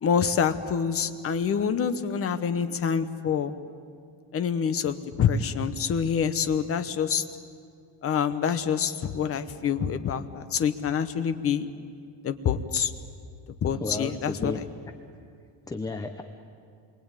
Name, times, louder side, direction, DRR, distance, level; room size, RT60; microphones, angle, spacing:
voice 1, 0.0-3.5 4.3-7.2 8.0-11.7 12.2-12.9 13.6-14.6, left 7 dB, 30° left, 10 dB, 1.0 m, -26 dB
voice 2, 13.7-14.6 15.7-16.2, left 3 dB, 10° left, 6 dB, 0.6 m, -33 dB
28.0 x 23.0 x 9.0 m, 2.3 s
cardioid pair, 175°, 46 cm